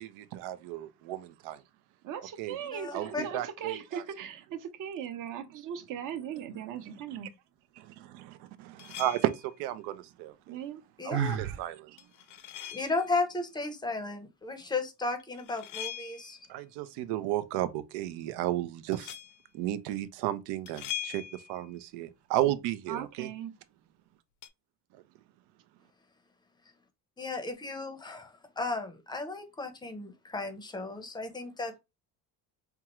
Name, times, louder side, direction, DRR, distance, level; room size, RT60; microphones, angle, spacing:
voice 1, 0.0-1.6 2.4-2.6 2.9-4.0 7.8-10.6 11.0-12.0 16.5-19.2 19.5-21.2 21.5-23.3 24.9-25.0, right 13 dB, 90° right, 0.6 m, -33 dB
voice 2, 2.0-7.3 10.5-10.8 22.9-23.5, right 8 dB, 55° right, 0.8 m, -39 dB
voice 3, 2.7-3.2 11.0-11.4 12.7-16.4 27.2-31.8, left 3 dB, 10° left, 0.6 m, -34 dB
sound 1, 8.8-9.5 12.0-13.1 15.2-16.5 18.9-19.4 20.7-21.7 24.4-24.5, left 10 dB, 50° left, 0.6 m, -41 dB
Sigh, 11.1-11.6, right 8 dB, 35° right, 0.4 m, -30 dB
4.4 x 2.4 x 2.9 m
cardioid pair, 130°, 38 cm